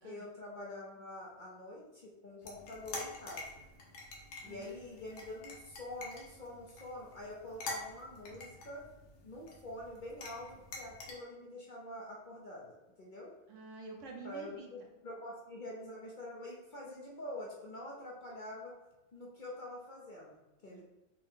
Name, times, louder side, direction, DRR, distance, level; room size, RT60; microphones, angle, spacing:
voice 1, 0.0-3.6 4.4-8.9 9.2-13.3 14.2-18.7 19.1-20.8, left 1 dB, 50° left, -4 dB, 0.7 m, -46 dB
sound 1, 2.4-11.1, left 2 dB, 85° left, 1.1 m, -47 dB
voice 2, 13.5-14.7 20.7-20.8, right 3 dB, 70° right, 2 dB, 1.0 m, -48 dB
4.4 x 2.1 x 3.7 m, 1.0 s
omnidirectional pair, 1.3 m